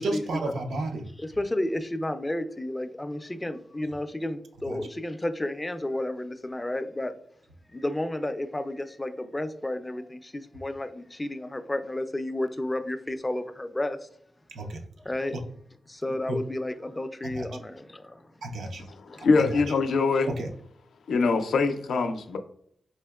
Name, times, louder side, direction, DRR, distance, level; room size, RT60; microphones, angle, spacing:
voice 1, 0.0-1.1 4.7-4.8 14.5-14.8 16.3-16.4 17.2-17.5 18.4-18.8 19.4-19.5 20.3-20.5, right 2 dB, 85° right, 0.5 m, -31 dB
voice 2, 1.2-7.1 7.7-14.0 15.0-15.4 15.9-18.3 19.1-19.3, left 1 dB, 15° left, 0.3 m, -32 dB
voice 3, 18.9-20.3 21.1-22.4, left 4 dB, 85° left, 0.4 m, -24 dB
4.3 x 2.8 x 2.3 m
wide cardioid pair, 105°, 0 cm